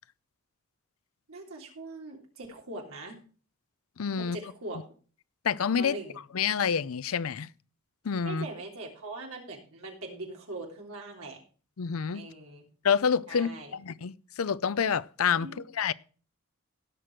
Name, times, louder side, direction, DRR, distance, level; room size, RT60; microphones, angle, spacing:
voice 1, 1.3-3.2 4.2-4.8 5.8-6.2 8.2-11.4 12.1-12.6 13.3-13.7 15.4-15.6, right 2 dB, 80° right, 3.3 m, -41 dB
voice 2, 4.0-4.4 5.4-6.0 6.3-7.5 8.0-8.5 11.8-12.2 12.8-15.5 15.8-15.9, left 7 dB, 80° left, 0.5 m, -27 dB
17.0 x 6.0 x 4.7 m
head